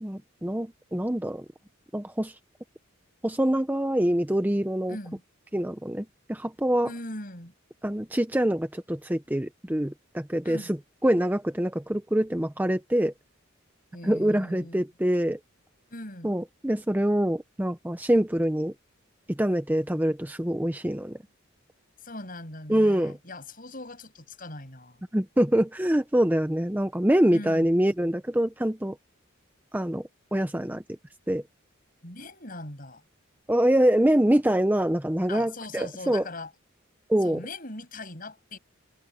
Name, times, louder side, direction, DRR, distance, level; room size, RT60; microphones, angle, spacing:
voice 1, 0.0-1.5 1.9-2.3 3.2-5.0 5.5-6.9 7.8-10.8 11.0-13.1 14.0-15.4 16.2-18.7 19.3-21.2 22.7-23.2 25.1-29.0 29.7-30.8 31.3-31.4 33.5-36.2 37.1-37.4, right 1 dB, 10° right, 0.7 m, -25 dB
voice 2, 4.9-5.2 6.8-7.5 10.4-10.7 13.9-14.8 15.9-16.4 22.0-25.0 27.3-27.7 32.0-33.0 35.3-36.5 37.2-38.6, left 2 dB, 45° left, 6.5 m, -40 dB
head